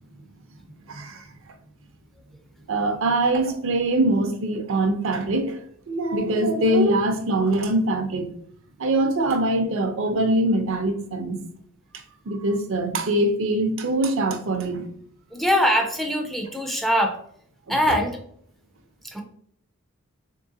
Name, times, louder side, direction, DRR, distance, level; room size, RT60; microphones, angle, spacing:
voice 1, 0.9-1.3 2.7-5.6 5.9-8.3 8.8-11.4 11.9-14.9 17.7-18.0, right 1 dB, 60° right, 6 dB, 0.6 m, -23 dB
voice 2, 15.3-17.2 17.7-18.1 19.1-19.2, equal, ahead, 3 dB, 0.4 m, -22 dB
3.7 x 3.2 x 2.6 m, 0.64 s
head